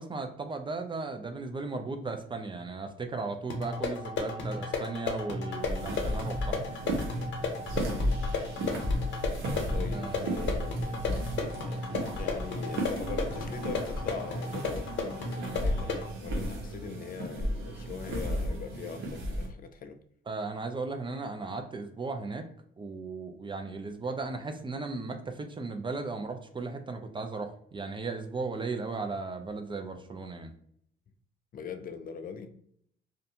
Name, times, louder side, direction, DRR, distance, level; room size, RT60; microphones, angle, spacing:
voice 1, 0.0-6.6 9.9-10.6 20.3-22.5 22.8-30.5, right 3 dB, 25° right, 0.4 m, -36 dB
sound 1, 3.5-16.1, left 4 dB, 70° left, 0.8 m, -34 dB
sound 2, 5.6-19.5, equal, 80° right, 0.7 m, -34 dB
voice 2, 7.8-8.2 9.7-11.8 12.1-20.0 31.5-32.5, left 6 dB, 45° left, 0.4 m, -41 dB
2.5 x 2.2 x 2.7 m
cardioid pair, 90°, 20 cm